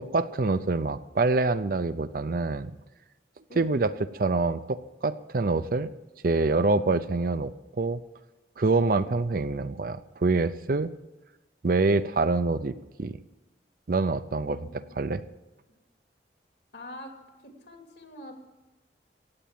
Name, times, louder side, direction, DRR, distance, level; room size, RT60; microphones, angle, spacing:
voice 1, 0.0-2.8 3.5-5.9 6.2-8.0 8.6-10.9 11.6-12.7 13.0-13.2 13.9-14.7 15.0-15.2, right 3 dB, 50° right, 13 dB, 0.5 m, -26 dB
voice 2, 3.5-3.9 14.4-15.2 16.7-17.1 17.4-18.3, left 1 dB, 70° left, 3 dB, 2.7 m, -45 dB
15.5 x 9.1 x 7.5 m, 1.1 s
head